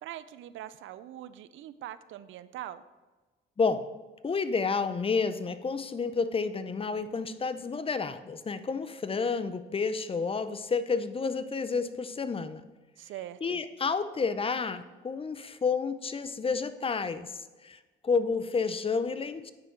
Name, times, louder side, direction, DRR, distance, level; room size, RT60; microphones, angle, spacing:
voice 1, 0.0-2.8 13.0-13.6, right 12 dB, 80° right, 14 dB, 0.5 m, -42 dB
voice 2, 4.2-12.6 13.4-19.5, left 5 dB, 30° left, 12 dB, 0.5 m, -30 dB
9.0 x 6.4 x 4.5 m, 1.2 s
cardioid pair, 90°, 20 cm